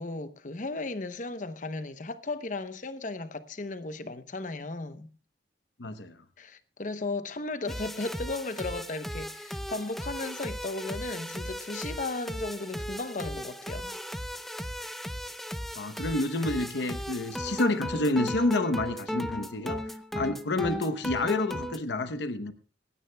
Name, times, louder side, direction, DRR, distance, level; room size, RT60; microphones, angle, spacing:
voice 1, 0.0-5.1 6.4-13.9, left 3 dB, 45° left, 0.8 m, -35 dB
voice 2, 5.8-6.2 15.8-22.5, left 2 dB, 85° left, 0.9 m, -29 dB
sound 1, 7.7-21.8, equal, ahead, 0.6 m, -36 dB
26.5 x 9.8 x 2.2 m
head